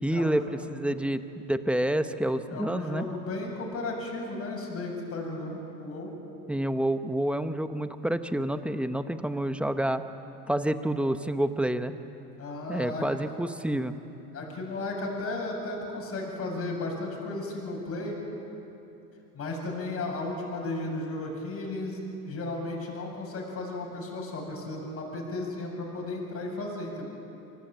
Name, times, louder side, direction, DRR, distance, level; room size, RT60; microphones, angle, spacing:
voice 1, 0.0-3.1 6.5-10.0 10.5-12.0 12.7-13.9, right 1 dB, 5° right, 10 dB, 1.0 m, -28 dB
voice 2, 2.5-6.1 12.4-13.4 14.3-18.1 19.3-27.0, left 2 dB, 30° left, 0 dB, 7.9 m, -34 dB
25.0 x 19.0 x 9.1 m, 2.9 s
supercardioid pair, 105°, 44 cm